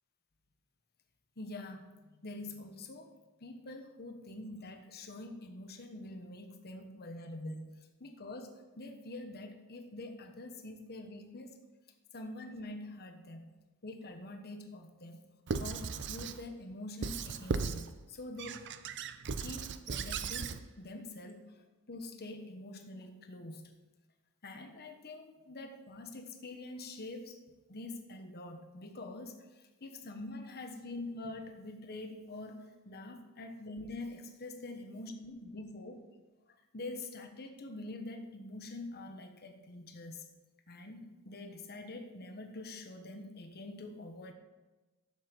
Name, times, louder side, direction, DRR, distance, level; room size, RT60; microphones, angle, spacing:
voice 1, 1.4-3.1 3.4-7.7 8.0-11.5 12.1-13.5 13.8-15.2 15.6-18.6 19.4-21.5 21.9-23.7 24.4-27.4 27.7-36.0 36.7-40.3 40.7-44.3, left 2 dB, 45° left, 5 dB, 1.2 m, -45 dB
Squeak / Writing, 15.5-16.4 17.0-17.9 18.4-20.6, right 5 dB, 55° right, 0.6 m, -37 dB
12.0 x 7.4 x 4.6 m, 1.2 s
head